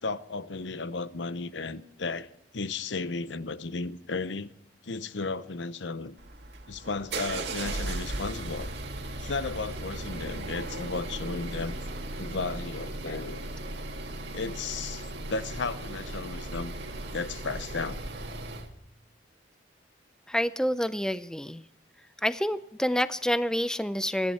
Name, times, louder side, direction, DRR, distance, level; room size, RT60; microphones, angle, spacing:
voice 1, 0.0-4.5 4.8-6.2 6.7-8.7 9.2-11.8 12.2-13.4 14.3-16.7 17.1-18.0, left 3 dB, 80° left, 0.8 m, -34 dB
sound 1, 6.2-18.7, right 2 dB, 65° right, 2.1 m, -37 dB
voice 2, 20.3-21.6 22.2-24.3, equal, 5° left, 0.5 m, -28 dB
27.0 x 10.5 x 4.3 m
head